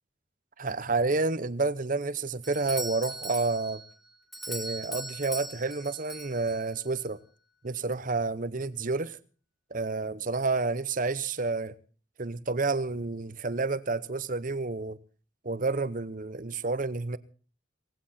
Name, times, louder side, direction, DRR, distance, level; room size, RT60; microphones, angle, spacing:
voice 1, 0.6-3.8 4.5-7.2 7.6-9.2 9.7-11.7 12.2-15.0 15.4-17.2, right 3 dB, 40° right, 0.8 m, -30 dB
Doorbell, 2.4-6.9, right 1 dB, ahead, 1.3 m, -40 dB
18.5 x 15.5 x 4.3 m
head